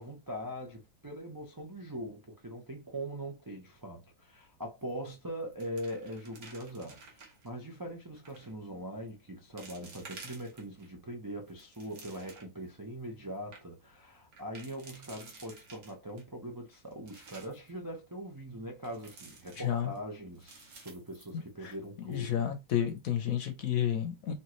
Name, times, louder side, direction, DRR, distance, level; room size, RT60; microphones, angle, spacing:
voice 1, 0.0-22.4, equal, 30° right, 0.3 m, -42 dB
sound 1, 4.8-5.1 5.4-7.5 8.1-8.5 9.1-9.2 9.6-10.9 11.4-12.6 13.0-13.1 13.3-13.6 14.3-16.2 16.7-17.7 18.8-20.0 20.4-21.9 22.1-22.2 22.7-23.0, right 4 dB, 65° right, 1.8 m, -52 dB
voice 2, 19.6-19.9 21.6-21.7 22.0-24.3, left 10 dB, 60° left, 1.1 m, -31 dB
4.4 x 2.9 x 3.0 m
omnidirectional pair, 1.8 m